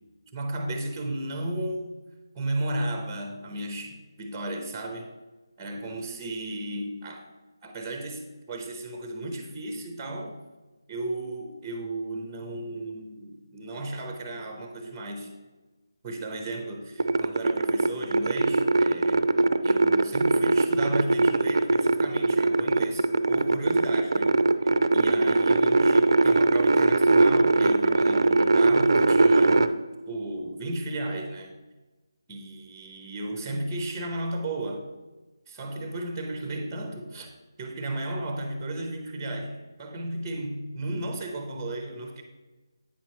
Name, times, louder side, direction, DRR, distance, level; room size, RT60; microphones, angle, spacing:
voice 1, 0.3-1.9 2.3-5.1 5.6-7.3 7.6-10.4 10.9-15.3 16.0-19.4 19.6-24.3 24.6-29.7 30.1-31.5 32.3-34.9 35.5-37.3 37.6-42.2, right 1 dB, 10° right, 4 dB, 0.6 m, -34 dB
sound 1, 17.0-29.7, right 2 dB, 65° right, 0.4 m, -21 dB
8.7 x 5.8 x 3.0 m, 1.2 s
figure-of-eight pair, 165°, 2 cm